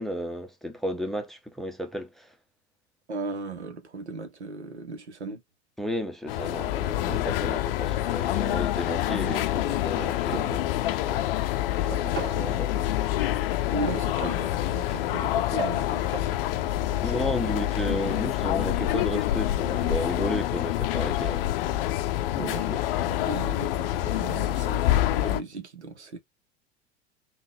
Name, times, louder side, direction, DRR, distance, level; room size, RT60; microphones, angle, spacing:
voice 1, 0.0-2.4 5.8-11.4 11.8-12.9 17.0-21.4 22.3-22.8, equal, ahead, 0.6 m, -33 dB
voice 2, 3.1-5.4 13.7-17.5 22.4-26.2, right 3 dB, 85° right, 0.8 m, -37 dB
sound 1, 6.3-25.4, left 13 dB, 60° left, 0.5 m, -27 dB
sound 2, 10.3-10.8 11.9-12.5 13.9-14.5 15.6-16.3, right 5 dB, 35° right, 1.6 m, -36 dB
3.6 x 2.3 x 3.3 m
figure-of-eight pair, 80°, 33 cm